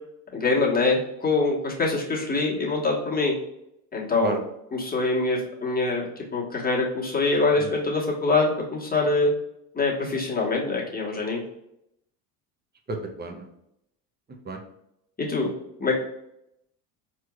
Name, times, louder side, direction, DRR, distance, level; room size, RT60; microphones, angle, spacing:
voice 1, 0.3-3.4 3.9-4.4 4.7-9.3 9.7-11.4 15.2-15.5 15.8-15.9, left 3 dB, 20° left, -4 dB, 1.3 m, -24 dB
voice 2, 12.9-13.4 14.5-14.6, right 3 dB, 20° right, 3 dB, 0.7 m, -31 dB
4.3 x 3.1 x 2.4 m, 0.80 s
supercardioid pair, 85°, 47 cm